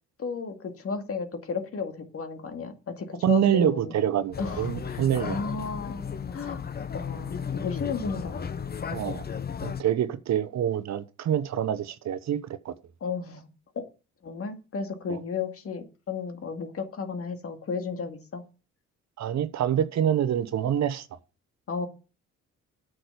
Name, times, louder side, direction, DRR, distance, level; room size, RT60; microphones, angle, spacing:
voice 1, 0.2-3.9 4.4-6.7 6.9-8.7 13.0-13.5 13.7-13.8 14.2-18.4 21.7-21.9, left 5 dB, 50° left, 2.1 m, -34 dB
voice 2, 3.2-5.4 8.9-9.2 9.6-12.7 15.1-15.2 19.2-21.1, right 10 dB, 65° right, 1.0 m, -26 dB
sound 1, 4.3-9.8, left 7 dB, 30° left, 0.9 m, -34 dB
8.9 x 6.4 x 6.7 m
cardioid pair, 90°, 30 cm